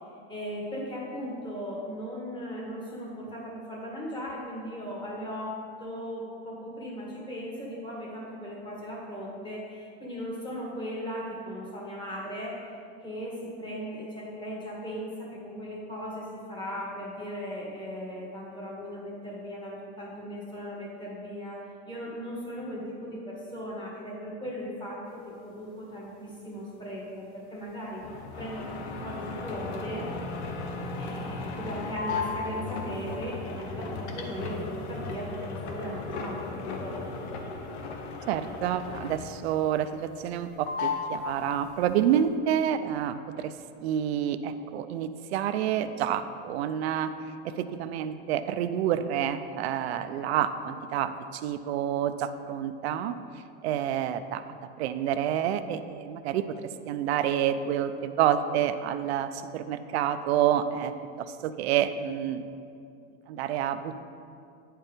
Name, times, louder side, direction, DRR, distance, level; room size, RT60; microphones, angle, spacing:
voice 1, 0.3-12.6 13.0-28.0 28.4-30.1 31.0-37.1, equal, 15° left, -4 dB, 1.7 m, -38 dB
sound 1, 25.0-37.3, left 5 dB, 45° left, 1.5 m, -51 dB
sound 2, 28.0-39.5 39.8-40.4 40.7-42.0, left 4 dB, 90° left, 1.0 m, -36 dB
voice 2, 38.3-43.6 43.8-47.1 47.4-53.2 53.6-54.4 54.8-60.9 61.2-62.5 63.3-64.1, right 10 dB, 80° right, 11 dB, 0.6 m, -28 dB
9.4 x 4.5 x 5.0 m, 2.4 s
supercardioid pair, 145°, 31 cm